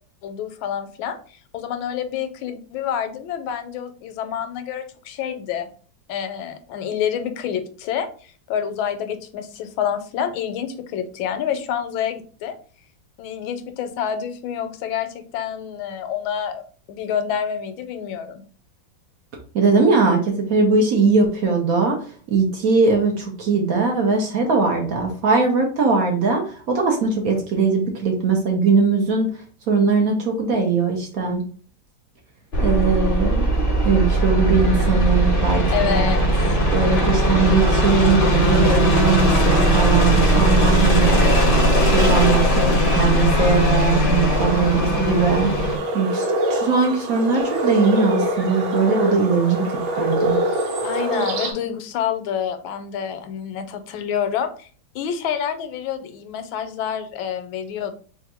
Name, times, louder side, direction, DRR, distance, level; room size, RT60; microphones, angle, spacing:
voice 1, 0.2-5.7 6.1-12.6 13.2-16.6 16.9-18.4 35.7-36.3 50.8-54.7 54.9-58.0, left 8 dB, 85° left, 9 dB, 1.4 m, -28 dB
voice 2, 19.5-29.3 29.7-31.5 32.6-33.5 33.8-36.1 36.7-41.2 41.8-45.5 45.9-50.4, right 4 dB, 60° right, 1 dB, 1.0 m, -20 dB
sound 1, 32.5-45.8, right 1 dB, 45° left, 0.7 m, -18 dB
sound 2, 44.3-51.5, right 1 dB, 80° right, 1.7 m, -25 dB
3.5 x 2.5 x 4.2 m, 0.42 s
omnidirectional pair, 2.2 m